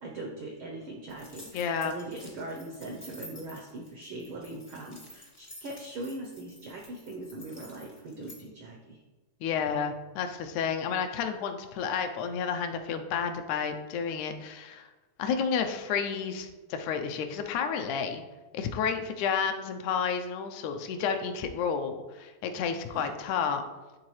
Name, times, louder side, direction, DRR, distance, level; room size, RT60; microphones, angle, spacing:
voice 1, 0.0-9.0 9.7-9.8 22.9-23.1, right 2 dB, 90° right, 0 dB, 1.1 m, -41 dB
sound 1, 1.1-8.4, left 1 dB, 25° left, 0.4 m, -50 dB
voice 2, 1.5-1.9 9.4-14.9 15.2-18.2 18.5-23.6, left 6 dB, 80° left, 6 dB, 1.9 m, -31 dB
11.5 x 3.8 x 3.1 m, 1.1 s
omnidirectional pair, 3.4 m